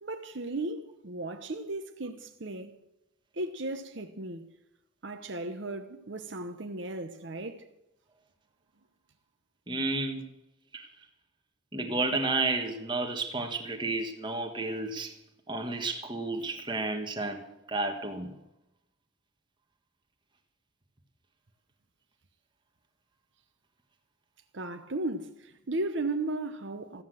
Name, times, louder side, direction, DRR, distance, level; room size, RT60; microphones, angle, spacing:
voice 1, 0.0-2.7 3.3-4.5 5.0-7.6 24.5-27.0, right 2 dB, 60° right, 1.0 m, -35 dB
voice 2, 9.7-10.2 10.7-10.9 11.7-15.1 15.5-18.3, right 2 dB, 20° right, 1.5 m, -31 dB
14.5 x 9.7 x 7.6 m
head